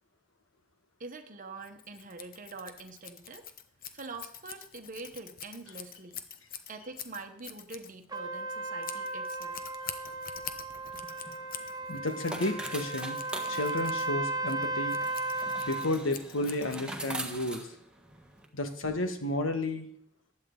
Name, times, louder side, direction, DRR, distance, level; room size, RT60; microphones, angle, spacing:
voice 1, 1.0-3.5 3.9-6.2 6.7-9.6, right 3 dB, 45° right, 5 dB, 1.1 m, -45 dB
Scissors, 1.6-17.2, left 8 dB, 45° left, 1.0 m, -46 dB
Trumpet, 8.1-15.9, right 2 dB, 20° right, 1.2 m, -35 dB
sound 1, 10.8-18.5, right 2 dB, 5° right, 1.5 m, -43 dB
voice 2, 11.9-13.2 13.5-15.0 15.6-17.7 18.5-19.9, left 1 dB, 80° left, 6 dB, 1.6 m, -32 dB
15.5 x 10.5 x 3.9 m, 0.64 s
head